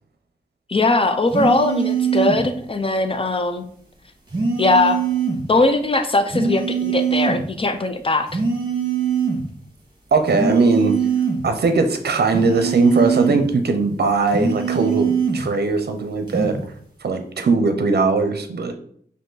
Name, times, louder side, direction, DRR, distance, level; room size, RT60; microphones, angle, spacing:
voice 1, 0.7-3.6 4.6-5.0 5.5-8.4, left 2 dB, 30° left, 8 dB, 0.6 m, -20 dB
sound 1, 1.3-2.5 4.3-5.5 6.3-7.5 8.3-9.5 10.3-11.5 12.3-13.5 14.3-15.5 16.3-16.6, right 6 dB, 25° right, 1.8 m, -22 dB
voice 2, 10.1-10.9 11.4-16.6 17.0-18.7, right 3 dB, 65° right, 7 dB, 0.6 m, -19 dB
5.1 x 2.7 x 3.9 m, 0.62 s
cardioid pair, 50°, 18 cm